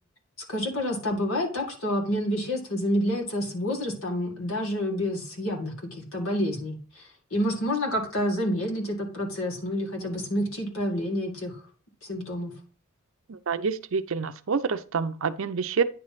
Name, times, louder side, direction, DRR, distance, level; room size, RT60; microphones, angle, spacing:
voice 1, 0.5-11.6 12.0-12.5, equal, 70° left, 2.1 m, -28 dB
voice 2, 13.3-15.8, right 5 dB, 70° right, 0.5 m, -27 dB
9.4 x 3.2 x 5.8 m
head